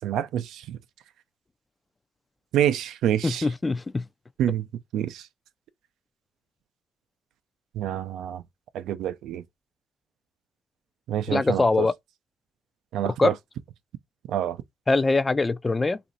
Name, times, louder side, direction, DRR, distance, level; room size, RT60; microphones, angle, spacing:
voice 1, 0.0-0.8 2.5-3.5 4.4-4.7 4.9-5.3 7.7-8.4 8.7-9.4 11.1-11.9 12.9-13.3 14.3-14.6, right 11 dB, 85° right, 0.4 m, -27 dB
voice 2, 3.2-4.0 11.3-11.9 13.2-13.3 14.9-16.0, left 3 dB, 25° left, 0.3 m, -22 dB
3.0 x 2.5 x 3.9 m
cardioid pair, 90°, 0 cm